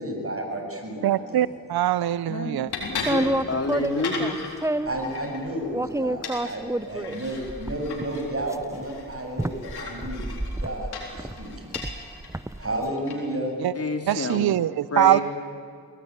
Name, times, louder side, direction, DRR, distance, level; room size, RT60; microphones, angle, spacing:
voice 1, 0.0-1.6 4.9-10.3 10.6-11.7 12.6-13.5, right 1 dB, 35° right, 3 dB, 7.5 m, -32 dB
voice 2, 1.0-2.7 14.1-15.2, right 13 dB, 70° right, 18 dB, 0.6 m, -22 dB
sound 1, 1.6-13.5, left 4 dB, 90° left, 4.0 m, -39 dB
voice 3, 2.3-4.3 13.7-14.5 14.9-15.2, left 2 dB, 40° left, 4 dB, 3.4 m, -29 dB
sound 2, 2.9-5.0 5.7-12.8, right 1 dB, 10° right, 0.8 m, -29 dB
22.5 x 18.0 x 9.7 m, 2.3 s
supercardioid pair, 40°, 39 cm